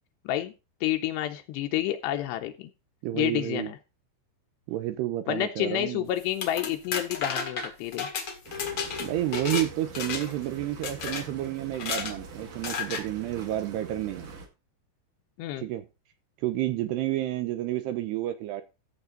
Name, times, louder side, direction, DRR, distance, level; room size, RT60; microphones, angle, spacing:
voice 1, 0.8-2.7 3.1-3.8 5.3-8.1 15.4-15.7, left 13 dB, 80° left, 2.8 m, -29 dB
voice 2, 3.0-3.7 4.7-6.1 9.0-14.3 15.6-15.9 16.4-18.6, right 14 dB, 80° right, 2.7 m, -30 dB
sound 1, 6.2-9.7 9.9-10.4 10.8-11.2 11.7-12.1 12.6-13.0, left 5 dB, 60° left, 1.2 m, -32 dB
sound 2, 8.5-14.5, right 3 dB, 50° right, 2.9 m, -44 dB
14.5 x 7.0 x 3.9 m
omnidirectional pair, 5.1 m